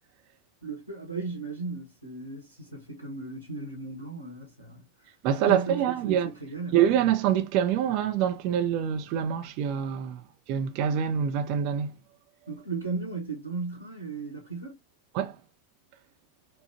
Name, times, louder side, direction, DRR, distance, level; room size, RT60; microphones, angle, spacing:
voice 1, 0.6-4.8 5.5-6.8 12.5-14.8, right 3 dB, 90° right, 1.6 m, -36 dB
voice 2, 5.2-6.3 6.7-10.2 10.5-11.9 15.1-15.4, right 9 dB, 40° right, 0.9 m, -25 dB
4.9 x 2.6 x 2.9 m
figure-of-eight pair, 90°, 0 cm